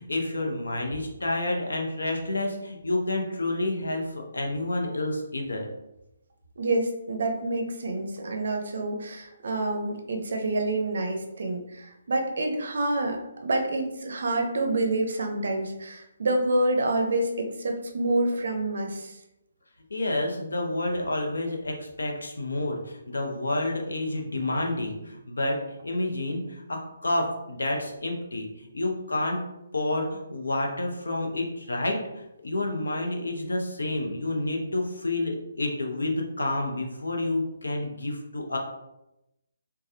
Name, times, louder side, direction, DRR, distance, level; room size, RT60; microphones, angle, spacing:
voice 1, 0.0-5.7 19.9-29.4 29.7-38.6, left 2 dB, 80° left, 1 dB, 0.7 m, -29 dB
voice 2, 6.6-19.2, right 2 dB, 65° right, 3 dB, 0.5 m, -27 dB
3.3 x 2.2 x 2.7 m, 0.90 s
figure-of-eight pair, 145°, 0 cm